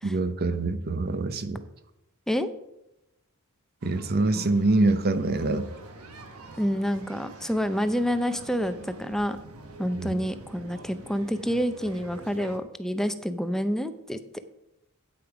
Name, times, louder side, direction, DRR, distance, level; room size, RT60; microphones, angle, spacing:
voice 1, 0.0-1.6 3.8-5.7 9.9-10.2, right 2 dB, 45° right, 10 dB, 0.8 m, -25 dB
sound 1, 3.8-12.6, right 2 dB, 90° right, 1.3 m, -45 dB
voice 2, 6.6-9.4 9.8-14.2, equal, ahead, 10 dB, 0.5 m, -28 dB
8.8 x 8.4 x 4.8 m, 0.88 s
head